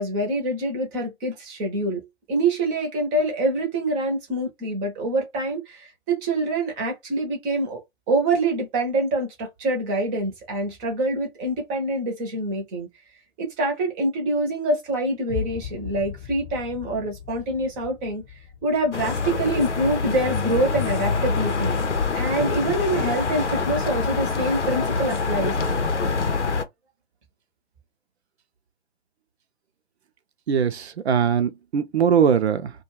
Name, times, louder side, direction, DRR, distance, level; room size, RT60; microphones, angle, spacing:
voice 1, 0.0-2.0 2.3-7.8 8.1-12.9 13.4-18.2 18.6-21.7 22.1-25.5, right 2 dB, 15° right, 0.6 m, -25 dB
sound 1, 15.3-21.3, left 8 dB, 30° left, 0.6 m, -39 dB
sound 2, 18.9-26.6, left 4 dB, 90° left, 0.7 m, -25 dB
voice 2, 30.5-32.7, right 7 dB, 70° right, 0.6 m, -21 dB
2.3 x 2.3 x 3.1 m
figure-of-eight pair, 135°, 34 cm